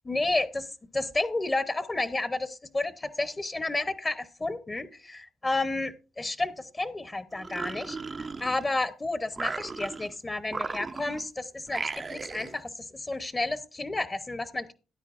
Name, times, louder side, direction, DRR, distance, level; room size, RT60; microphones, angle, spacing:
voice 1, 0.1-0.7 0.9-8.0 8.4-14.7, left 2 dB, 20° left, 12 dB, 0.8 m, -31 dB
sound 1, 7.3-8.9 9.3-10.1 10.5-11.3 11.7-12.6, right 4 dB, 35° right, 0.5 m, -36 dB
13.5 x 9.4 x 2.5 m, 0.33 s
cardioid pair, 90°, 0 cm